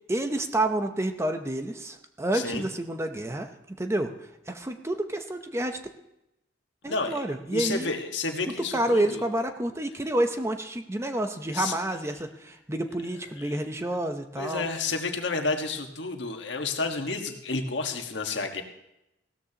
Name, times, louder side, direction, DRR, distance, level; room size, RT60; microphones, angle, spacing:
voice 1, 0.1-4.1 4.5-5.8 6.8-7.9 8.7-14.7, right 1 dB, 15° right, 6 dB, 0.8 m, -29 dB
voice 2, 2.3-2.6 6.8-7.2 7.5-9.2 11.5-11.8 13.4-13.6 14.3-18.6, left 3 dB, 75° left, 4 dB, 1.5 m, -30 dB
16.5 x 13.5 x 2.9 m, 0.86 s
head